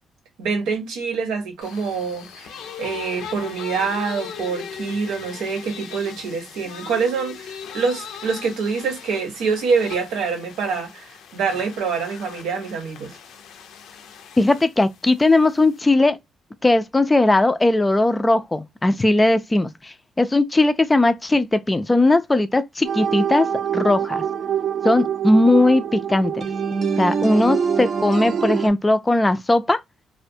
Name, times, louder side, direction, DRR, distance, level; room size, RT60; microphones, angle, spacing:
voice 1, 0.4-13.2, right 5 dB, 90° right, 0.8 m, -25 dB
sound 1, 1.6-15.8, left 7 dB, 80° left, 0.5 m, -39 dB
voice 2, 14.4-16.2 16.6-23.5 23.7-24.2 24.8-26.4 27.0-29.8, left 2 dB, 15° left, 0.3 m, -18 dB
sound 2, 22.8-28.7, right 7 dB, 55° right, 0.5 m, -24 dB
2.4 x 2.2 x 2.6 m
cardioid pair, 90°, 0 cm